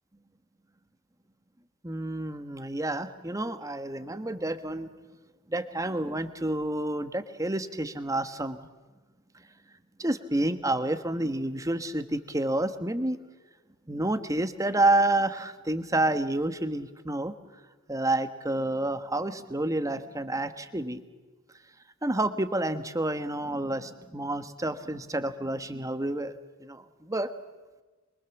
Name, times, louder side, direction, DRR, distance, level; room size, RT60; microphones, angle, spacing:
voice 1, 1.8-4.9 5.5-8.6 10.0-13.2 13.9-17.3 17.9-21.0 22.0-27.3, right 1 dB, 15° right, 10 dB, 1.3 m, -29 dB
25.5 x 23.0 x 7.2 m, 1.3 s
head